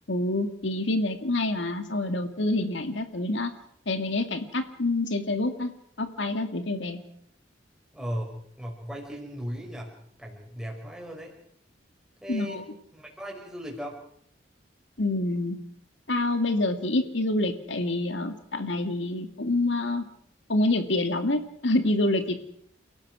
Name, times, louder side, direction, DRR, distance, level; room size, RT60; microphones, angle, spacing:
voice 1, 0.1-3.5 3.9-5.7 6.0-7.0 12.3-12.6 15.0-15.6 16.1-20.0 20.5-22.4, left 2 dB, 75° left, 7 dB, 2.1 m, -27 dB
voice 2, 7.9-11.3 12.2-12.6 12.9-14.0, equal, 5° right, -1 dB, 5.6 m, -37 dB
29.5 x 17.5 x 6.2 m, 0.69 s
head